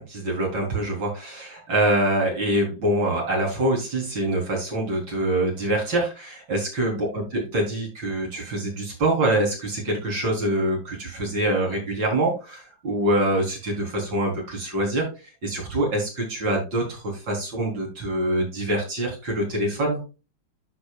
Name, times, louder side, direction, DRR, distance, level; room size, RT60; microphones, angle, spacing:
voice 1, 0.0-15.1 15.4-20.0, right 1 dB, 65° right, -1 dB, 4.5 m, -25 dB
13.0 x 5.5 x 2.3 m, 0.29 s
omnidirectional pair, 2.2 m